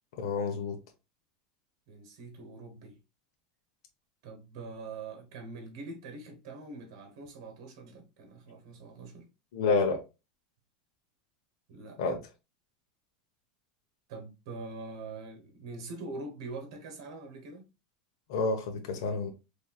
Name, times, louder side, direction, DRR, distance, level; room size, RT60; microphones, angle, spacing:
voice 1, 0.1-0.8 9.5-10.0 12.0-12.2 18.3-19.3, left 4 dB, 75° left, 0.9 m, -29 dB
voice 2, 1.9-3.0 4.2-9.3 11.7-12.0 14.1-17.7, right 3 dB, 70° right, 1.1 m, -43 dB
4.3 x 3.3 x 2.2 m
supercardioid pair, 160°, 3 cm